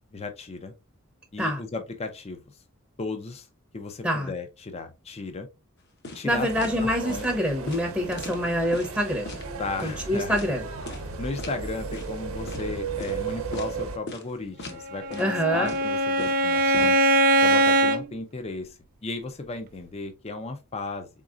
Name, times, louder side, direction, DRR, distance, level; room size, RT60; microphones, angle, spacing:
voice 1, 0.1-0.7 1.3-2.4 3.0-3.5 3.7-5.5 6.1-6.5 6.8-7.3 9.6-10.6 11.2-17.0 17.4-21.1, left 3 dB, 30° left, 0.5 m, -35 dB
sound 1, 6.0-6.3 6.6-6.8 7.1-7.3 7.7-8.9 9.3-9.5 9.8-10.0 10.3-10.5 10.9-11.1 11.4-11.6 11.9-12.2 12.5-12.6 13.0-13.2 13.5-13.8 14.1-14.2 14.6-14.8 15.1-15.3 15.7-16.9, left 2 dB, 55° left, 0.9 m, -39 dB
voice 2, 6.2-9.3 9.8-10.6 15.2-15.7, equal, 5° right, 0.7 m, -26 dB
sound 2, 6.3-14.0, right 5 dB, 75° right, 0.7 m, -35 dB
Bowed string instrument, 14.8-18.0, right 2 dB, 40° right, 0.3 m, -21 dB
4.0 x 3.7 x 2.5 m
head